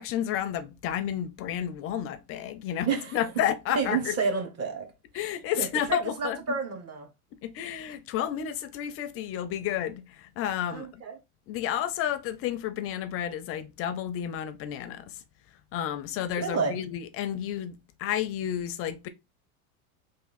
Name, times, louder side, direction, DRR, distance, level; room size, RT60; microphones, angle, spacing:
voice 1, 0.0-4.2 5.1-6.6 7.4-11.0 11.5-15.2 15.7-19.1, left 10 dB, 35° left, 0.4 m, -31 dB
voice 2, 2.9-3.2 3.7-4.9 5.6-7.1 10.7-11.1 16.4-16.8, right 5 dB, 35° right, 1.3 m, -30 dB
3.5 x 2.6 x 4.0 m
hypercardioid pair, 110°, 43 cm